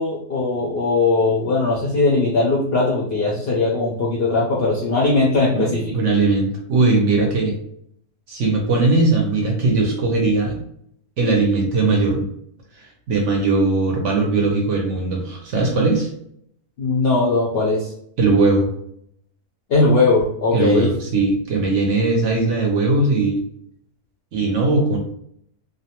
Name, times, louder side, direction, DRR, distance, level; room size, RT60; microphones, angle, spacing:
voice 1, 0.0-6.0 16.8-17.9 19.7-20.9, left 3 dB, 65° left, -4 dB, 0.6 m, -19 dB
voice 2, 5.5-7.5 8.3-10.6 11.2-12.3 12.8-16.1 18.2-18.7 20.5-23.4 24.3-25.0, right 3 dB, 65° right, 0 dB, 0.8 m, -19 dB
2.6 x 2.1 x 2.8 m, 0.70 s
omnidirectional pair, 1.6 m